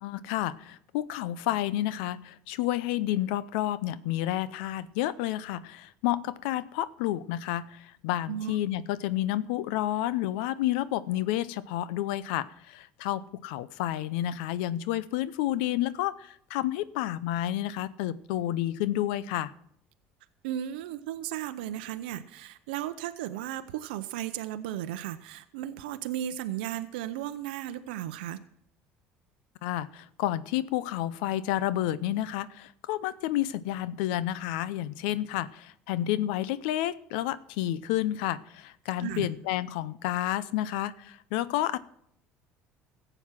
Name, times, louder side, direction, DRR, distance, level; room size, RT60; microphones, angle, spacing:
voice 1, 0.0-19.5 29.6-41.8, left 13 dB, 80° left, 17 dB, 0.6 m, -30 dB
voice 2, 20.4-28.4 39.0-39.3, right 12 dB, 85° right, 10 dB, 0.6 m, -35 dB
14.5 x 7.9 x 5.8 m, 0.71 s
supercardioid pair, 80°, 5 cm